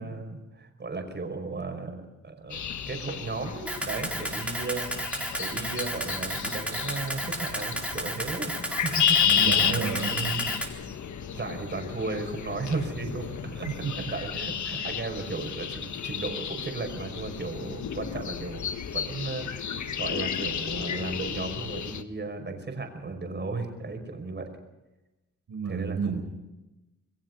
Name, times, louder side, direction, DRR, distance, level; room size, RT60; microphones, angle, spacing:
voice 1, 0.0-2.0 2.2-5.0 5.4-9.2 11.3-24.5 25.7-26.2, right 3 dB, 35° right, 5 dB, 5.5 m, -35 dB
sound 1, 2.5-22.0, left 8 dB, 75° left, 1.4 m, -32 dB
Camera, 3.7-10.7, right 1 dB, 5° right, 4.1 m, -33 dB
voice 2, 9.1-10.6 13.8-14.1 25.5-26.2, right 5 dB, 80° right, 3 dB, 5.1 m, -31 dB
28.0 x 21.5 x 5.5 m, 1.0 s
wide cardioid pair, 125°, 29 cm